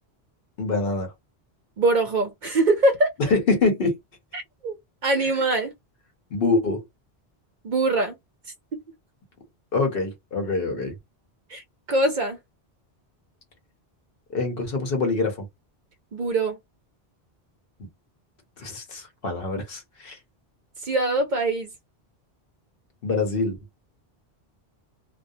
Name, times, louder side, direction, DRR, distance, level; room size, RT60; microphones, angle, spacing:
voice 1, 0.6-1.1 3.2-3.9 5.2-5.3 6.3-6.8 9.7-10.9 14.3-15.4 18.6-20.2 23.0-23.6, left 3 dB, 65° left, 0.9 m, -25 dB
voice 2, 1.8-3.1 4.3-4.8 5.0-5.7 7.6-8.1 11.5-11.6 11.9-12.4 16.1-16.6 20.8-21.7, right 2 dB, 55° right, 0.6 m, -22 dB
2.4 x 2.0 x 2.6 m
omnidirectional pair, 1.1 m